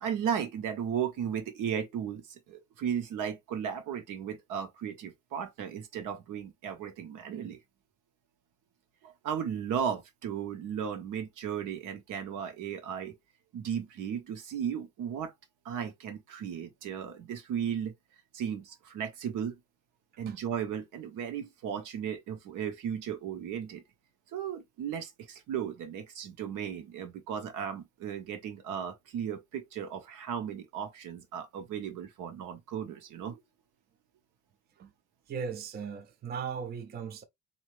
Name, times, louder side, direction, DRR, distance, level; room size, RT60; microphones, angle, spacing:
voice 1, 0.0-7.6 9.0-13.2 13.5-15.3 15.6-17.9 18.3-19.6 20.2-23.8 24.3-33.4, right 8 dB, 75° right, 1.2 m, -35 dB
voice 2, 35.3-37.2, right 6 dB, 30° right, 0.5 m, -37 dB
4.2 x 2.8 x 3.1 m
cardioid pair, 140°, 31 cm